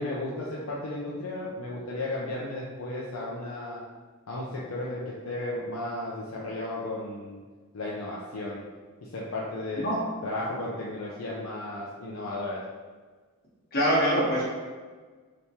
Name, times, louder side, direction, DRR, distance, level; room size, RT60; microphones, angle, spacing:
voice 1, 0.0-3.8 4.3-7.4 7.7-8.6 9.1-9.9 10.2-12.6, left 2 dB, 70° left, -5 dB, 0.5 m, -34 dB
voice 2, 13.7-14.5, equal, 45° left, -6 dB, 1.1 m, -24 dB
3.5 x 2.9 x 2.8 m, 1.4 s
head